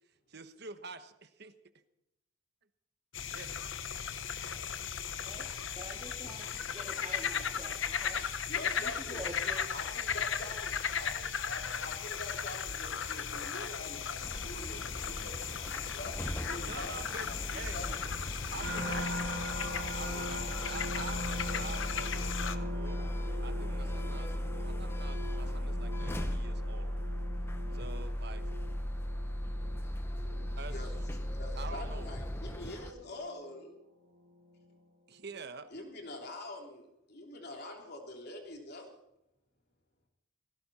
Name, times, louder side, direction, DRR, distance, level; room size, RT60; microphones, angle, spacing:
voice 1, 0.3-1.5 3.3-3.5 16.6-17.8 18.5-19.1 19.9-23.1 23.4-26.9 27.7-28.4 30.6-30.9 31.6-32.1 35.1-35.7, right 4 dB, 50° right, 10 dB, 1.2 m, -46 dB
sound 1, 3.1-22.6, left 7 dB, 65° left, 1.0 m, -36 dB
voice 2, 5.7-8.2 8.7-9.6 19.7-19.9, equal, 20° right, -2 dB, 2.1 m, -47 dB
voice 3, 8.5-9.2 9.7-17.0 17.3-18.0 30.7-30.9 31.3-33.8 35.7-38.9, left 2 dB, 50° left, 2 dB, 3.3 m, -45 dB
sound 2, 14.2-32.9, equal, 10° left, 0.9 m, -37 dB
sound 3, 18.6-33.8 34.3-34.7, equal, 70° right, 2.7 m, -43 dB
18.5 x 16.5 x 4.3 m, 0.87 s
head